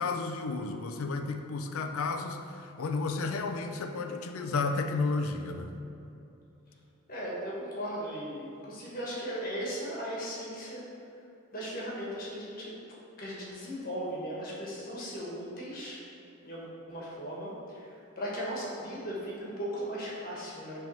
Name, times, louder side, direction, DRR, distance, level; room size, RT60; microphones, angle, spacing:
voice 1, 0.0-5.7, left 3 dB, 75° left, 5 dB, 0.5 m, -32 dB
voice 2, 7.1-10.9 11.5-12.8 13.2-16.0 16.4-20.8, equal, 40° left, -5 dB, 1.4 m, -37 dB
5.9 x 3.5 x 5.5 m, 2.8 s
head